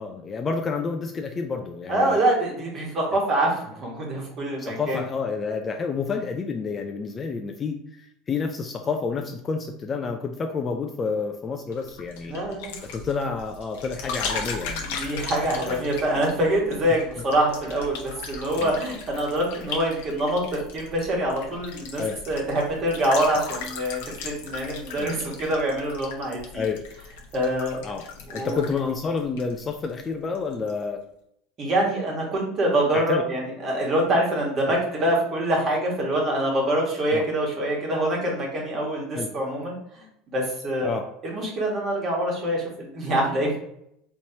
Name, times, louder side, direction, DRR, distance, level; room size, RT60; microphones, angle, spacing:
voice 1, 0.0-2.2 3.1-3.2 4.6-12.4 12.9-14.8 15.7-15.8 16.4-16.5 18.3-18.7 22.0-22.2 24.9-25.1 26.5-26.8 27.8-28.0 28.3-31.0 32.9-33.2 34.7-34.8 37.1-37.3 39.1-39.3 40.8-41.1, left 5 dB, 20° left, 4 dB, 0.3 m, -29 dB
voice 2, 1.9-5.0 12.3-12.9 14.8-20.4 20.7-26.7 27.3-27.8 28.3-28.6 31.6-40.9 41.2-43.6, right 1 dB, 30° right, -1 dB, 1.3 m, -25 dB
sound 1, 11.7-30.1 30.3-30.8, left 5 dB, 85° left, 0.8 m, -37 dB
4.4 x 3.0 x 2.7 m, 0.76 s
cardioid pair, 150°, 0 cm